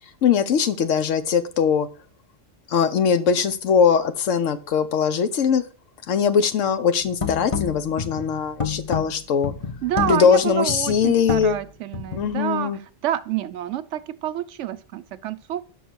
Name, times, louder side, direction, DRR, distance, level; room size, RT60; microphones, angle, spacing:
voice 1, 0.2-1.9 2.7-5.6 6.1-9.5 10.1-11.6 12.1-12.8, left 7 dB, 80° left, 1.1 m, -21 dB
sound 1, 7.0-12.4, left 6 dB, 30° left, 0.7 m, -30 dB
voice 2, 9.8-12.7 13.0-15.6, right 11 dB, 75° right, 0.9 m, -28 dB
5.9 x 5.4 x 6.2 m
omnidirectional pair, 1.3 m